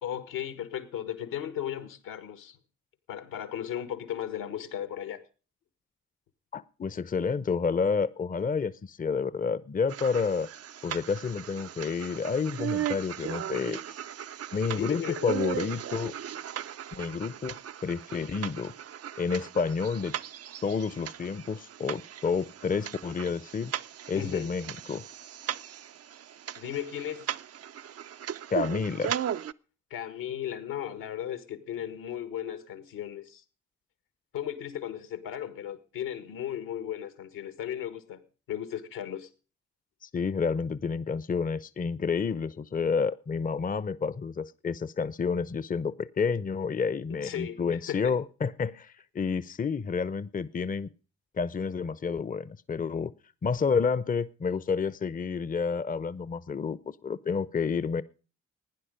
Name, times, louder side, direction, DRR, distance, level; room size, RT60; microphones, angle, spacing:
voice 1, 0.0-2.6 3.1-5.2 14.8-15.2 24.1-24.5 26.6-27.3 29.9-33.4 34.3-38.2 38.5-39.3 47.2-48.1, left 10 dB, 75° left, 1.6 m, -36 dB
voice 2, 6.5-10.5 10.8-13.8 14.5-16.1 16.9-18.7 19.2-20.1 20.6-23.7 24.1-25.0 28.5-29.2 40.0-50.9 51.3-53.1 53.4-58.0, left 5 dB, 25° left, 0.7 m, -30 dB
sound 1, 9.9-29.5, right 10 dB, 45° right, 0.6 m, -37 dB
16.5 x 10.0 x 5.1 m
hypercardioid pair, 45°, 34 cm